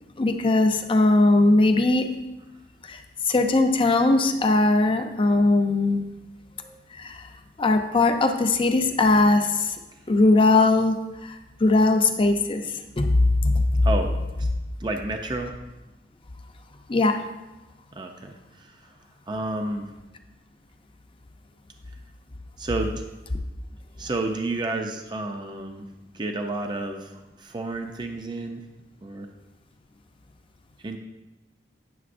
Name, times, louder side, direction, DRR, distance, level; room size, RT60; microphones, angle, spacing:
voice 1, 0.2-2.1 2.9-3.0 3.3-6.1 6.9-7.2 7.6-9.7 10.1-10.9 11.2-12.6 13.0-13.8 16.9-17.2, left 2 dB, 30° left, 5 dB, 0.5 m, -20 dB
voice 2, 14.8-15.5 18.0-18.4 18.6-18.7 19.3-19.9 22.6-23.0 24.0-25.9 26.1-27.1 27.4-28.6 29.0-29.3 30.8-31.0, right 2 dB, 25° right, 4 dB, 0.4 m, -30 dB
9.4 x 6.7 x 2.5 m, 1.0 s
head